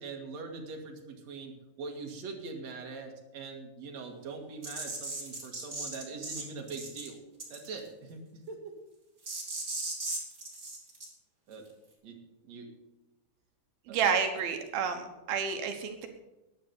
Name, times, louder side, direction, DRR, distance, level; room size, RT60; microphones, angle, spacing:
voice 1, 0.0-7.2 7.5-8.2 8.5-8.7 11.5-11.7 12.0-12.7 13.9-14.0, right 4 dB, 50° right, 2 dB, 2.3 m, -42 dB
sound 1, 4.6-6.4 6.7-7.1 7.4-7.8 9.2-11.0, right 2 dB, 20° right, 2.7 m, -37 dB
voice 2, 13.9-16.1, right 6 dB, 70° right, 6 dB, 2.7 m, -30 dB
11.0 x 9.9 x 6.8 m, 0.99 s
omnidirectional pair, 4.9 m